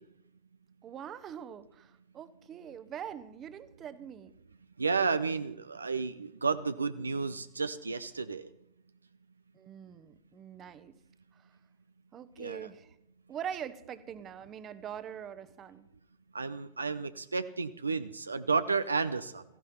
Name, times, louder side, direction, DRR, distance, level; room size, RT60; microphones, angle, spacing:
voice 1, 0.8-4.3 9.5-11.0 11.3-11.6 12.1-13.0 13.3-15.9, right 9 dB, 30° right, 14 dB, 1.0 m, -43 dB
voice 2, 4.8-8.5 12.4-12.7 16.3-19.4, right 4 dB, 75° right, 12 dB, 0.6 m, -32 dB
17.0 x 15.0 x 4.3 m, 0.82 s
figure-of-eight pair, 90°, 0 cm